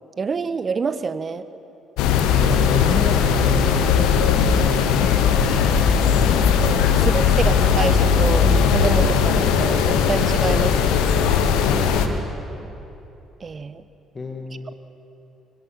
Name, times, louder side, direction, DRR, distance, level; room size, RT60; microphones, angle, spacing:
voice 1, 0.2-1.5 5.8-6.2 6.7-11.3 13.4-13.8, right 5 dB, 40° right, 13 dB, 1.1 m, -27 dB
sound 1, 2.0-12.1, left 6 dB, 75° left, 1.3 m, -18 dB
voice 2, 2.5-3.3 3.5-5.4 10.6-10.8 11.3-12.2 12.6-12.8 14.1-14.8, left 3 dB, 30° left, 3 dB, 2.0 m, -33 dB
25.5 x 16.5 x 7.4 m, 2.9 s
hypercardioid pair, 50°, 0 cm